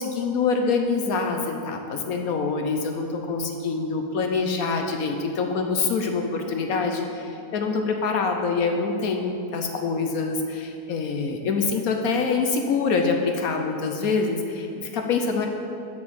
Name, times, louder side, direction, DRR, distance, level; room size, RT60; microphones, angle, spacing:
voice 1, 0.0-15.5, left 4 dB, 70° left, 4 dB, 1.1 m, -25 dB
7.1 x 6.4 x 7.2 m, 2.7 s
omnidirectional pair, 1.7 m